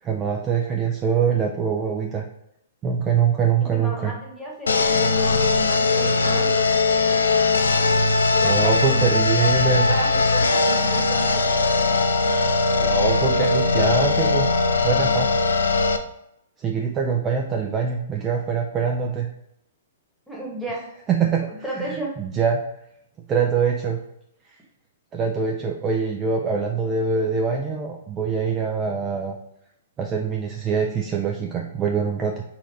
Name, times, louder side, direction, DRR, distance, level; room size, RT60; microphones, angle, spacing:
voice 1, 0.0-2.2 2.8-4.1 8.4-9.9 12.8-14.5 14.8-15.3 16.6-19.3 21.1-21.5 21.8-22.6 23.3-24.0 25.1-29.4 30.0-32.4, right 6 dB, 25° right, 1 dB, 0.4 m, -23 dB
voice 2, 3.6-6.8 8.3-11.5 20.3-20.8 21.2-22.1, equal, ahead, -4 dB, 1.3 m, -34 dB
sound 1, 4.7-16.0, left 3 dB, 90° left, 0.4 m, -20 dB
4.2 x 2.5 x 4.2 m, 0.80 s
hypercardioid pair, 130°, 0 cm